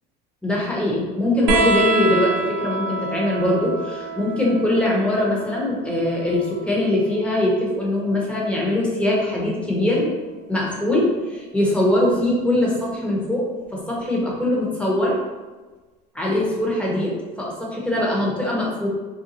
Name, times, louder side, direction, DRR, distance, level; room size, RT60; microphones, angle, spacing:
voice 1, 0.4-10.1 10.5-13.4 13.7-15.2 16.2-18.9, left 1 dB, 5° left, -4 dB, 1.1 m, -22 dB
sound 1, 1.5-8.5 9.9-10.7 12.0-12.1, right 3 dB, 65° right, 0.7 m, -28 dB
2.7 x 2.2 x 4.1 m, 1.3 s
supercardioid pair, 85°, 21 cm